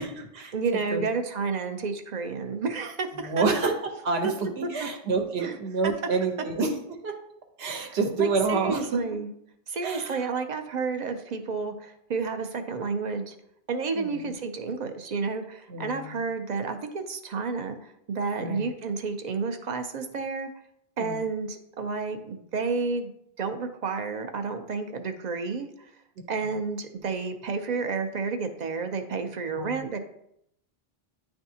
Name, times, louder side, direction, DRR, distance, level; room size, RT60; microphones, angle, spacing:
voice 1, 0.0-0.5 0.9-1.1 3.2-3.7 4.0-4.3 4.6-7.1 7.6-9.0 9.8-10.3 13.9-14.3 15.7-16.2 18.4-18.7 21.0-21.2 29.6-29.8, right 4 dB, 80° right, 3 dB, 1.1 m, -28 dB
voice 2, 0.5-3.4 4.2-4.3 4.6-4.9 5.4-5.6 5.8-5.9 7.9-9.3 9.7-13.3 13.7-20.5 21.0-23.1 23.4-25.7 26.3-30.0, right 4 dB, 50° right, 6 dB, 0.6 m, -31 dB
10.0 x 3.5 x 2.7 m, 0.76 s
omnidirectional pair, 1.1 m